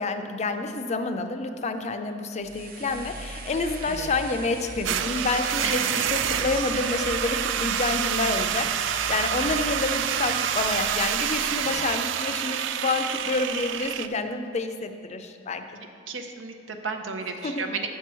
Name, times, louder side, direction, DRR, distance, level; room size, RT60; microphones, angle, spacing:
voice 1, 0.0-15.6 17.4-17.7, left 3 dB, 35° left, 7 dB, 0.4 m, -28 dB
sound 1, 2.4-11.8, right 2 dB, 50° right, 0.7 m, -39 dB
sound 2, 4.8-14.1, right 9 dB, 70° right, 0.3 m, -27 dB
voice 2, 16.1-17.9, right 4 dB, 90° right, 5 dB, 0.7 m, -33 dB
8.2 x 4.5 x 6.1 m, 2.4 s
head